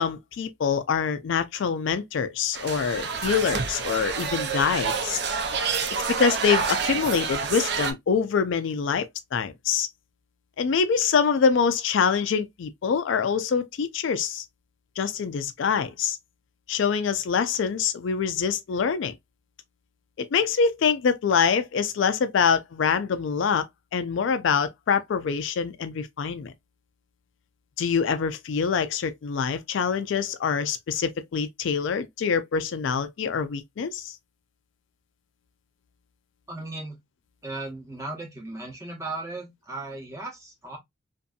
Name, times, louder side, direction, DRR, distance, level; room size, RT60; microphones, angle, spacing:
voice 1, 0.0-5.2 6.1-9.1 9.3-9.9 10.6-14.4 15.0-16.2 16.7-19.1 20.2-23.7 23.9-26.5 27.8-34.1, left 6 dB, 65° left, 0.3 m, -25 dB
sound 1, 2.5-7.9, right 5 dB, 55° right, 0.5 m, -28 dB
voice 2, 36.5-37.0 37.4-40.8, right 2 dB, 15° right, 0.8 m, -36 dB
2.6 x 2.5 x 2.3 m
head